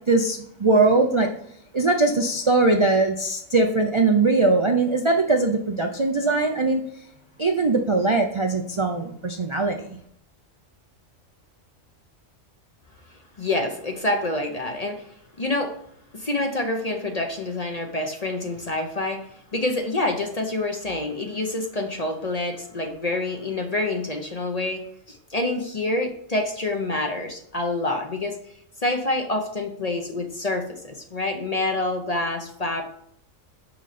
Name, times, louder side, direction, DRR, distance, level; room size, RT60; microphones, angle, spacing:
voice 1, 0.1-1.3 1.7-6.8 7.4-10.0, right 3 dB, 35° right, 3 dB, 0.4 m, -21 dB
voice 2, 13.4-15.1 15.4-15.8 16.1-28.4 28.8-32.8, left 2 dB, 35° left, 4 dB, 0.8 m, -27 dB
6.2 x 5.9 x 4.2 m, 0.70 s
omnidirectional pair, 1.4 m